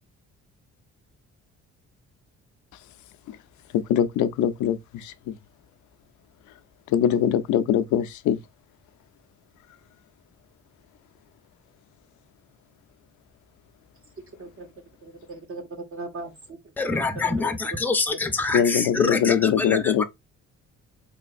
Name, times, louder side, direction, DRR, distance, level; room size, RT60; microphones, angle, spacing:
voice 1, 3.7-5.3 6.9-8.4 18.5-20.0, left 9 dB, 75° left, 0.5 m, -22 dB
voice 2, 15.0-16.6 16.9-17.0 17.4-17.5 18.5-18.7, right 3 dB, 45° right, 0.8 m, -38 dB
voice 3, 16.8-20.0, left 3 dB, 5° left, 0.5 m, -26 dB
3.8 x 3.4 x 2.4 m
cardioid pair, 90°, 30 cm